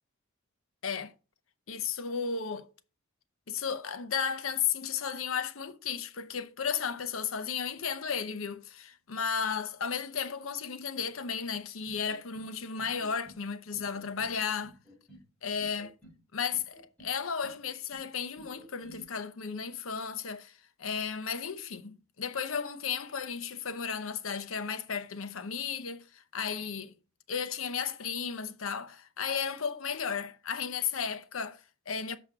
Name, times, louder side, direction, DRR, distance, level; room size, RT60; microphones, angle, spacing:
voice 1, 1.7-2.7 3.5-14.7 15.4-15.9 16.3-20.5 20.8-26.9 27.3-32.2, left 6 dB, 80° left, 0.7 m, -34 dB
sound 1, 11.9-12.5 12.8-13.4 13.7-14.3 14.6-15.2 15.6-16.2 16.5-17.1 17.4-18.0 18.4-19.0, right 1 dB, 5° left, 3.9 m, -53 dB
7.1 x 5.1 x 4.9 m
head